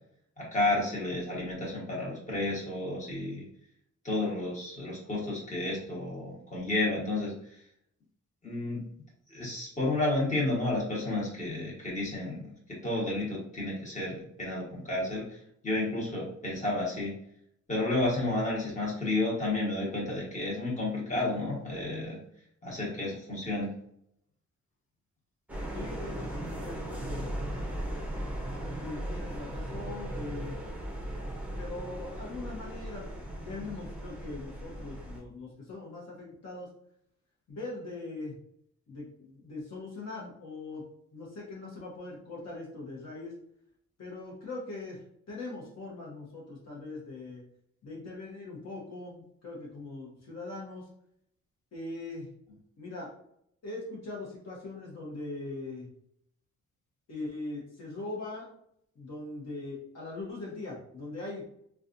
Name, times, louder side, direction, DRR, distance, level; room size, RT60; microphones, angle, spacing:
voice 1, 0.4-3.5 4.0-7.6 8.4-8.8 9.3-12.5 12.8-17.1 17.7-22.2 22.6-23.7, left 2 dB, 25° left, -5 dB, 1.3 m, -31 dB
sound 1, 25.5-35.2, right 1 dB, 5° right, 0.6 m, -37 dB
voice 2, 25.7-27.3 28.8-30.6 31.5-33.1 33.4-36.7 37.5-38.4 38.9-40.8 41.1-43.3 44.0-47.4 47.8-50.9 51.7-52.3 52.8-53.1 53.6-55.9 57.1-58.5 58.9-61.4, left 2 dB, 55° left, -4 dB, 1.0 m, -41 dB
4.1 x 2.4 x 2.5 m, 0.70 s
wide cardioid pair, 155°, 30 cm